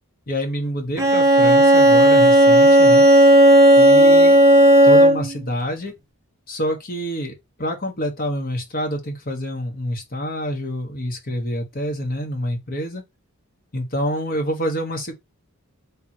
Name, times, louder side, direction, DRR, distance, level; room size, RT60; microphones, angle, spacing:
voice 1, 0.3-3.1 3.8-4.4 4.8-5.9 6.5-13.0 13.7-15.1, equal, 40° left, 1.3 m, -27 dB
Bowed string instrument, 1.0-5.4, right 1 dB, 15° right, 0.7 m, -12 dB
3.6 x 3.0 x 4.3 m
head